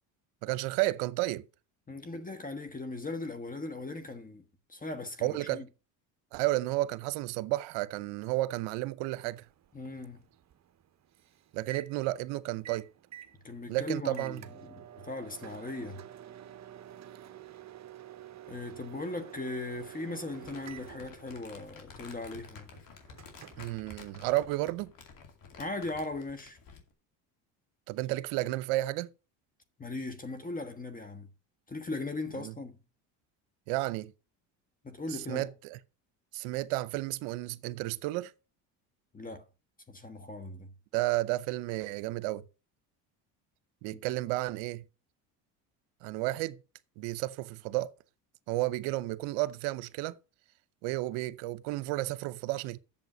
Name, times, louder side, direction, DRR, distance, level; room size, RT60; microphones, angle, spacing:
voice 1, 0.4-1.5 5.2-5.6 6.3-9.4 11.5-12.9 13.7-14.4 23.6-24.9 27.9-29.1 32.3-32.5 33.7-34.1 35.1-35.8 36.3-38.3 40.9-42.4 43.8-44.8 46.0-46.6 47.0-47.9 48.5-50.2 50.8-52.8, right 18 dB, 80° right, 0.8 m, -32 dB
voice 2, 1.9-5.6 9.7-10.2 13.4-14.4 14.7-16.0 18.5-22.7 25.6-26.6 29.8-31.3 31.7-32.8 34.8-35.5 39.1-39.4 39.9-40.7, left 2 dB, 20° left, 1.4 m, -39 dB
Microwave oven, 9.0-24.7, right 11 dB, 40° right, 0.9 m, -50 dB
Crumpling crinkling, 20.3-26.9, left 5 dB, 50° left, 2.5 m, -52 dB
7.8 x 7.0 x 6.1 m
supercardioid pair, 80°, 42 cm